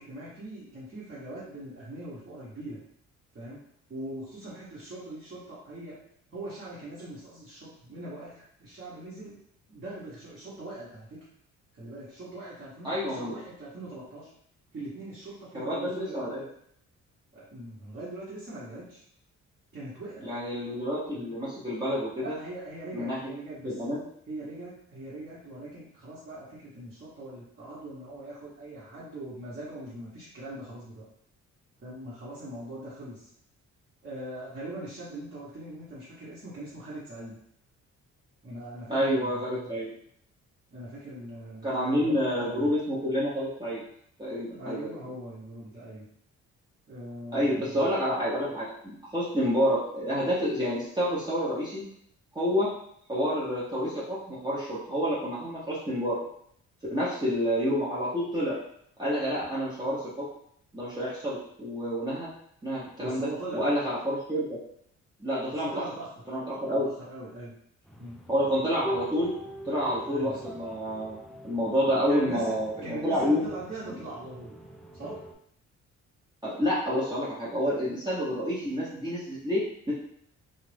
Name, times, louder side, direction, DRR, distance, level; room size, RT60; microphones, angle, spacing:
voice 1, 0.0-2.8 3.3-3.6 3.9-6.0 6.3-9.4 9.7-11.2 11.7-14.3 14.7-16.5 17.3-19.0 19.7-20.3 21.1-21.4 22.2-23.7 24.3-31.0 31.8-33.3 34.0-37.4 38.4-39.7 40.7-42.7 44.6-46.1 46.9-47.9 63.0-63.6 65.6-66.1 66.8-67.5 68.0-68.2 70.1-70.4 72.1-72.5 72.8-74.6 74.9-75.2, right 1 dB, 35° right, -9 dB, 1.2 m, -41 dB
voice 2, 12.8-13.4 15.5-16.4 20.2-22.4 22.9-23.2 23.6-24.0 38.9-39.9 41.6-43.8 44.2-44.9 47.3-51.9 52.3-52.7 53.1-56.2 56.9-58.6 59.0-60.3 60.7-62.3 62.6-64.6 65.2-65.8 66.3-66.9 68.3-69.3 69.6-71.2 71.4-73.5 73.9-74.0 76.4-79.9, equal, 15° right, -9 dB, 0.8 m, -28 dB
sound 1, 67.8-75.3, equal, ahead, 0.3 m, -42 dB
2.6 x 2.4 x 3.3 m, 0.69 s
cardioid pair, 90°, 30 cm